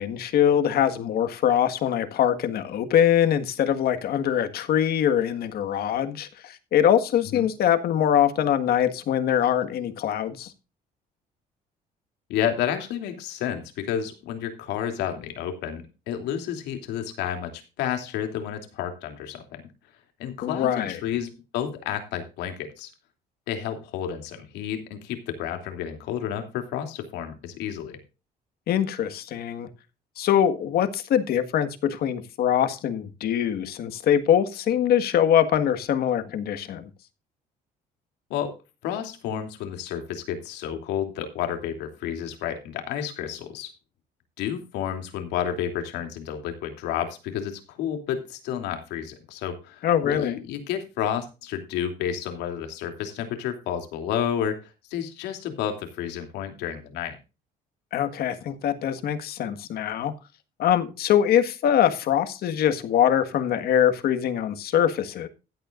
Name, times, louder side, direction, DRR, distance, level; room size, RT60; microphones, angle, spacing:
voice 1, 0.0-10.5 20.4-21.0 28.7-29.7 30.2-36.8 49.8-50.4 57.9-60.1 60.6-65.3, left 9 dB, 65° left, 1.7 m, -23 dB
voice 2, 12.3-19.6 20.2-22.9 23.5-28.0 38.3-38.6 38.8-43.7 44.4-54.6 54.9-57.1, left 9 dB, 90° left, 3.0 m, -31 dB
15.5 x 10.0 x 2.6 m
cardioid pair, 110°, 17 cm